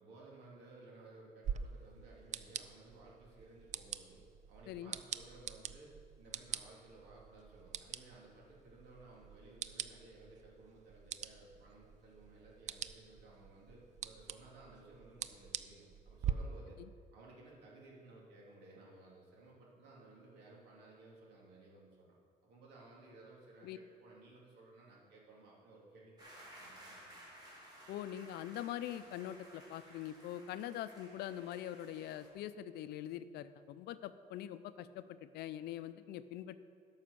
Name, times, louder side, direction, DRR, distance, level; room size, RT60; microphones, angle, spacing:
voice 1, 0.0-4.2 4.5-16.8 17.1-22.1 22.4-27.3, right 2 dB, 80° right, -4 dB, 3.0 m, -58 dB
sound 1, 1.4-16.3, right 9 dB, 45° right, 0.4 m, -45 dB
sound 2, 26.2-32.3, right 1 dB, 25° right, 3.2 m, -57 dB
voice 2, 27.9-36.6, left 11 dB, 75° left, 13 dB, 0.5 m, -43 dB
11.0 x 5.7 x 7.0 m, 2.1 s
cardioid pair, 110°, 17 cm